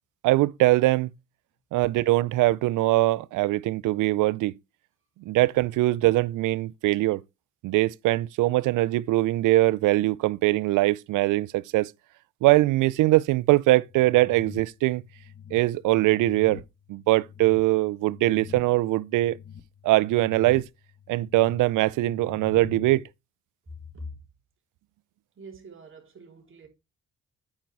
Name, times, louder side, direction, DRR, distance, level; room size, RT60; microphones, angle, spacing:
voice 1, 0.2-1.1 1.7-4.5 5.3-7.2 7.6-11.9 12.4-15.0 15.5-16.6 16.9-19.4 19.8-20.6 21.1-23.0, right 18 dB, 85° right, 0.5 m, -22 dB
sound 1, 13.9-23.0, left 8 dB, 35° left, 1.4 m, -46 dB
voice 2, 23.7-24.2 25.4-26.7, left 1 dB, 40° right, 3.6 m, -43 dB
8.9 x 5.4 x 4.6 m
cardioid pair, 90°, 30 cm